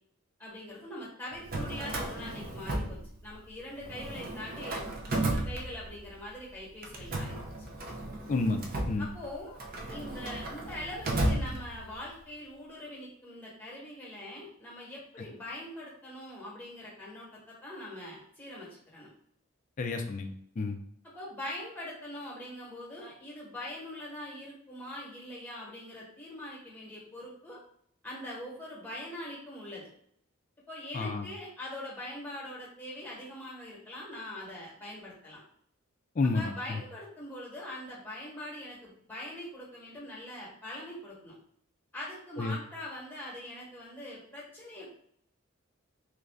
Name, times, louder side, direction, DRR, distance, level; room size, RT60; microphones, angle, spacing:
voice 1, 0.4-7.4 9.0-9.6 9.9-19.1 21.1-27.6 28.0-29.9 30.7-35.4 36.3-41.4 41.9-45.0, left 1 dB, 10° left, -5 dB, 1.1 m, -42 dB
Drawer open or close, 1.3-3.5 3.8-6.2 6.8-12.1, right 1 dB, 45° right, 0.5 m, -34 dB
voice 2, 8.3-8.6 8.9-9.1 19.8-20.8 30.9-31.3 36.2-36.5 42.4-42.6, left 3 dB, 35° left, 4 dB, 0.3 m, -30 dB
3.1 x 2.5 x 3.4 m, 0.67 s
head